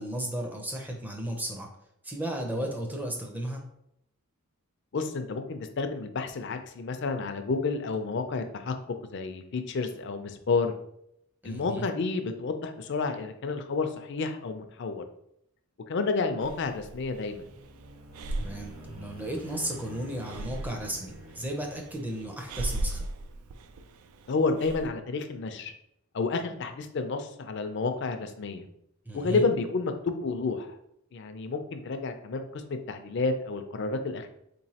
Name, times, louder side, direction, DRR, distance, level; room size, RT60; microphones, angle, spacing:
voice 1, 0.0-1.7 2.0-3.6 11.4-11.8 18.4-23.1 29.1-29.4, right 1 dB, 10° right, 1 dB, 0.5 m, -34 dB
voice 2, 4.9-8.7 9.1-10.7 11.4-15.0 15.9-17.5 24.3-25.7 26.1-28.6 29.1-30.7 31.1-34.3, left 4 dB, 55° left, 7 dB, 0.4 m, -30 dB
Breathing, 16.4-24.9, right 1 dB, 90° right, 0.3 m, -38 dB
sound 1, 17.0-22.7, equal, 70° right, 0.8 m, -48 dB
4.1 x 3.0 x 2.8 m, 0.75 s
head